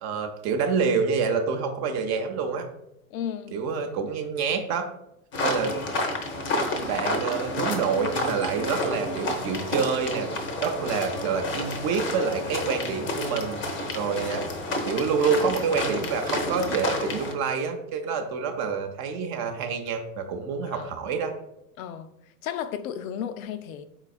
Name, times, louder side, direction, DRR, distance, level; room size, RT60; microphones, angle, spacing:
voice 1, 0.0-2.7 3.5-4.9 5.4-5.7 6.9-10.3 10.6-13.6 13.9-14.5 14.8-21.3, right 5 dB, 40° right, 0.6 m, -27 dB
voice 2, 3.1-3.6 20.7-20.9 21.8-22.1 22.4-23.8, left 9 dB, 70° left, 0.5 m, -33 dB
sound 1, 5.3-17.3, left 1 dB, 30° left, 0.6 m, -30 dB
4.1 x 3.9 x 2.4 m
hypercardioid pair, 115°, 43 cm